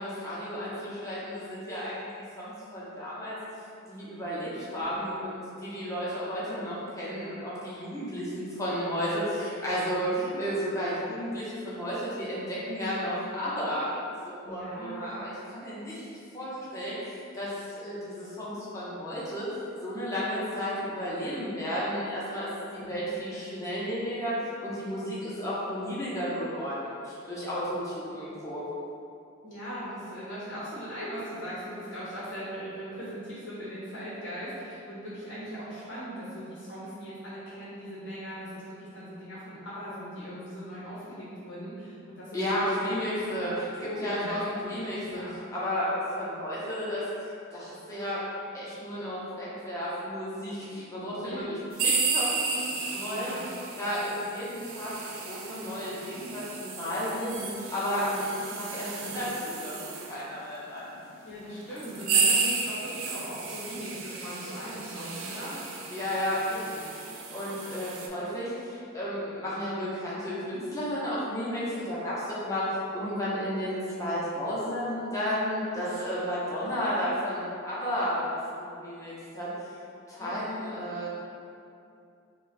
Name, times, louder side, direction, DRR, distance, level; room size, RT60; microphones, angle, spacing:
voice 1, 0.0-2.0 2.4-3.4 3.9-16.1 16.3-19.5 19.8-28.6 42.3-43.7 44.0-45.2 45.5-48.2 48.5-51.4 51.8-53.4 53.8-57.3 57.7-60.8 65.9-79.7 80.1-81.1, equal, 15° left, -9 dB, 0.8 m, -33 dB
voice 2, 4.5-5.0 10.1-10.5 14.4-15.1 22.8-23.0 29.4-42.7 43.3-44.4 44.7-45.3 51.2-51.5 53.1-53.5 57.1-57.5 61.2-66.0 75.7-75.8 80.2-80.4, equal, 55° left, -10 dB, 0.9 m, -40 dB
sound 1, 51.7-60.2 61.0-61.1 61.7-68.1, right 4 dB, 75° right, 0.4 m, -32 dB
3.1 x 2.4 x 4.0 m, 2.6 s
head